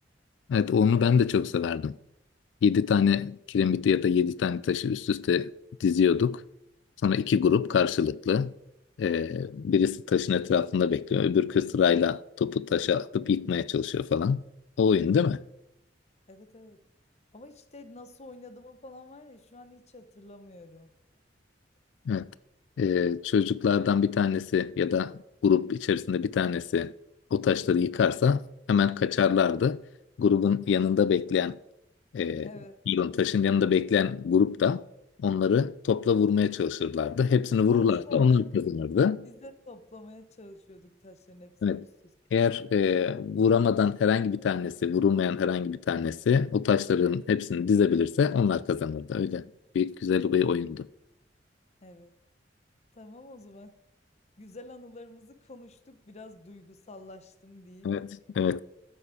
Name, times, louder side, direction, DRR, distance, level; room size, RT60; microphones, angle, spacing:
voice 1, 0.5-2.0 2.6-5.5 5.8-6.4 7.0-8.5 9.0-14.4 14.8-15.4 22.1-22.3 22.8-26.9 27.3-28.4 28.7-29.8 30.2-31.6 32.1-32.5 32.9-34.8 35.2-39.3 41.6-41.8 42.3-49.4 49.7-50.9 57.8-58.6, left 7 dB, 75° left, 0.3 m, -25 dB
voice 2, 16.3-16.9 17.3-20.9 32.4-32.8 37.7-38.5 39.2-41.8 51.8-52.1 52.9-53.8 54.4-58.0, left 2 dB, 40° left, 0.9 m, -48 dB
12.5 x 7.3 x 4.8 m
head